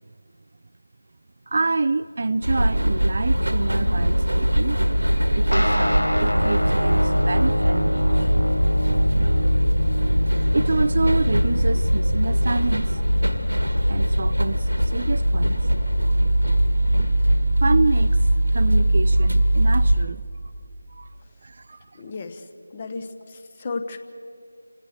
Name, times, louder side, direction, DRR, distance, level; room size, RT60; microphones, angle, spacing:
voice 1, 1.5-4.8 5.3-8.4 10.5-13.0 13.9-15.6 17.6-18.2 18.5-20.2 20.9-21.1 21.4-22.0, right 3 dB, 40° right, 14 dB, 0.4 m, -27 dB
sound 1, 2.4-20.1, equal, 80° right, 1.6 m, -21 dB
sound 2, 5.5-13.3, equal, 85° left, 0.9 m, -27 dB
voice 2, 22.0-24.0, left 3 dB, 25° left, 8 dB, 1.0 m, -34 dB
27.5 x 16.5 x 6.5 m, 2.4 s
figure-of-eight pair, 165°, 0 cm